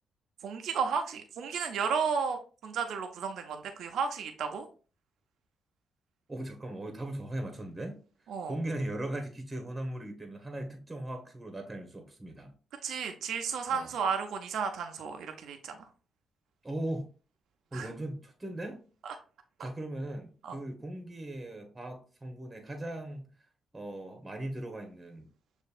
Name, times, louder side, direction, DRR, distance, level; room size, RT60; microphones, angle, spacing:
voice 1, 0.4-4.7 8.3-8.5 12.8-15.8 17.7-17.9 19.1-19.2 19.6-19.7 20.4-20.6, right 6 dB, 75° right, 0.6 m, -33 dB
voice 2, 6.3-8.0 8.5-12.5 12.8-13.0 13.7-13.9 16.6-17.1 17.7-18.8 19.6-23.3 23.7-25.3, right 1 dB, 20° right, 1.1 m, -38 dB
6.5 x 2.6 x 2.4 m
supercardioid pair, 60°, 0 cm